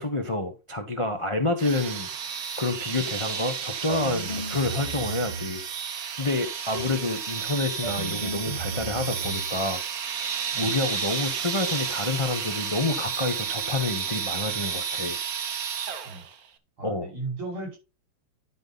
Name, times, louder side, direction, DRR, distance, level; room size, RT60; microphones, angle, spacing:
voice 1, 0.0-2.1 2.6-5.6 6.2-9.8 10.6-15.2 16.8-17.1, left 2 dB, 40° left, 0.4 m, -28 dB
sound 1, 1.6-16.3, right 7 dB, 55° right, 1.2 m, -32 dB
sound 2, 3.9-5.7 6.7-7.2 7.8-9.6, right 1 dB, 20° left, 3.3 m, -35 dB
voice 2, 16.8-17.8, right 3 dB, 80° right, 6.4 m, -35 dB
11.5 x 5.4 x 4.0 m
omnidirectional pair, 2.3 m